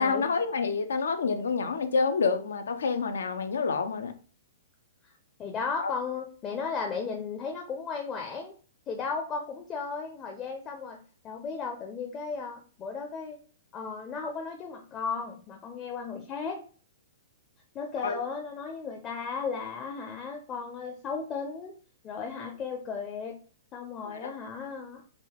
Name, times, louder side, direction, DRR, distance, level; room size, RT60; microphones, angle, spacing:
voice 1, 0.0-4.1 5.8-5.9 18.0-18.2 24.0-24.3, left 4 dB, 80° left, 0.6 m, -28 dB
voice 2, 5.4-8.5 8.9-11.0 11.2-13.4 13.7-16.6 17.7-21.7 22.0-23.3 23.7-25.0, left 5 dB, 25° left, 0.5 m, -35 dB
3.6 x 2.4 x 3.6 m
hypercardioid pair, 130°, 0 cm